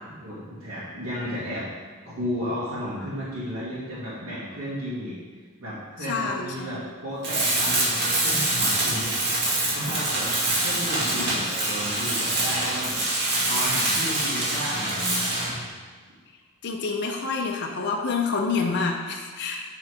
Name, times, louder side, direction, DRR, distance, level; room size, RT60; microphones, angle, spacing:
voice 1, 0.0-1.6 2.0-5.1 5.6-9.2 9.5-13.0 13.4-15.4, equal, 70° right, -10 dB, 1.9 m, -33 dB
voice 2, 6.1-6.5 11.2-11.3 16.6-19.6, left 4 dB, 50° left, 0 dB, 0.6 m, -27 dB
Tools, 7.2-15.6, right 2 dB, 50° right, 2.1 m, -25 dB
7.7 x 3.8 x 4.9 m, 1.5 s
head